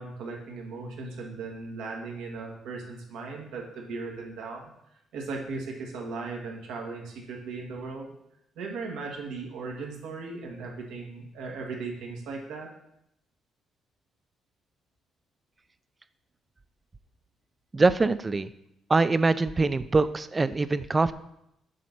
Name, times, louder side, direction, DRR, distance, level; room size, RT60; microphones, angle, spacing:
voice 1, 0.0-4.7 5.1-8.1 8.5-12.7, right 4 dB, 90° right, 0 dB, 1.6 m, -37 dB
voice 2, 17.7-18.5 18.9-21.1, right 3 dB, 25° right, 14 dB, 0.4 m, -23 dB
7.5 x 4.0 x 5.9 m, 0.80 s
cardioid pair, 90°, 0 cm